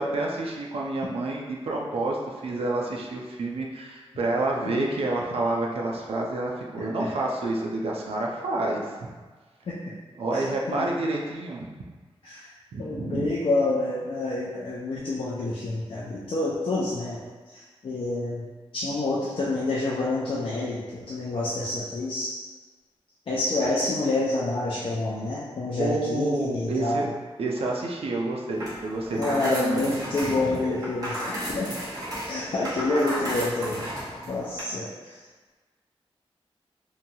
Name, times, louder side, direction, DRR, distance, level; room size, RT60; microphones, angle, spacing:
voice 1, 0.0-8.9 10.2-11.7 12.7-13.3 25.8-27.1 27.4-29.9 30.2-30.5, right 2 dB, 70° right, -1 dB, 0.4 m, -29 dB
voice 2, 10.3-10.9 12.2-12.5 12.8-17.2 17.5-18.5 18.7-22.4 23.3-27.0 29.2-31.2 31.5-31.7 32.3-33.9 34.3-35.2, left 2 dB, 60° left, -6 dB, 0.4 m, -28 dB
sound 1, 28.5-34.6, equal, 35° right, 0.9 m, -34 dB
2.9 x 2.2 x 2.6 m, 1.4 s
wide cardioid pair, 145°, 10 cm